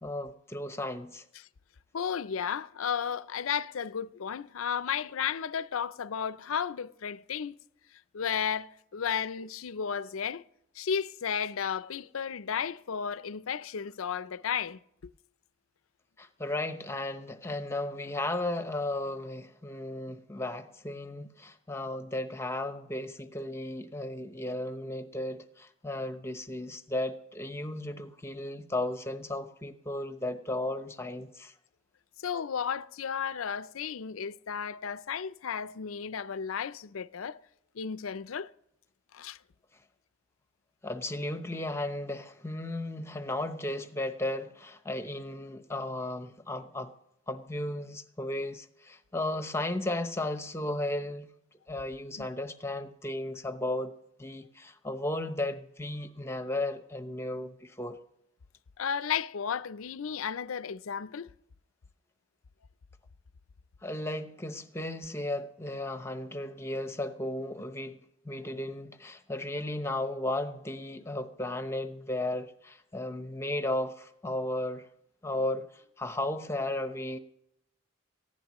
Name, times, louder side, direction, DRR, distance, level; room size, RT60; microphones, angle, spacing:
voice 1, 0.0-1.2 16.2-31.5 40.8-46.9 47.3-51.3 51.7-53.9 54.2-58.0 63.8-68.0 68.2-74.9 75.2-77.2, left 1 dB, 10° left, 0.8 m, -35 dB
voice 2, 1.9-7.6 8.1-10.4 10.7-14.8 32.2-37.4 37.7-38.5 39.1-39.4 52.2-52.3 58.8-61.3, left 7 dB, 85° left, 0.5 m, -33 dB
19.0 x 15.0 x 3.1 m
head